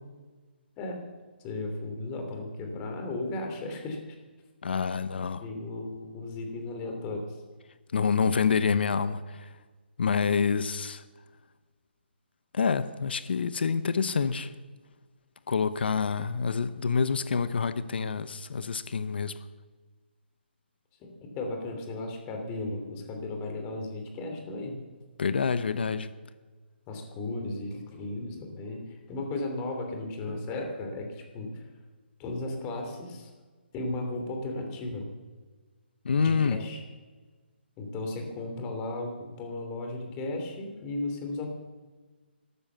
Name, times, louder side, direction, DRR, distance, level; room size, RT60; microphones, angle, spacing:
voice 1, 1.4-4.2 5.4-7.4 21.0-21.1 21.3-24.8 26.9-31.6 32.2-33.3 33.7-35.1 36.2-36.8 37.8-39.1 39.4-41.5, left 2 dB, 20° left, 3 dB, 3.0 m, -35 dB
voice 2, 4.6-5.4 7.9-9.5 10.0-11.0 12.5-14.5 15.5-19.3 25.2-26.1 36.0-36.6, left 5 dB, 65° left, 13 dB, 0.9 m, -27 dB
13.5 x 12.5 x 6.9 m, 1.4 s
hypercardioid pair, 150°, 6 cm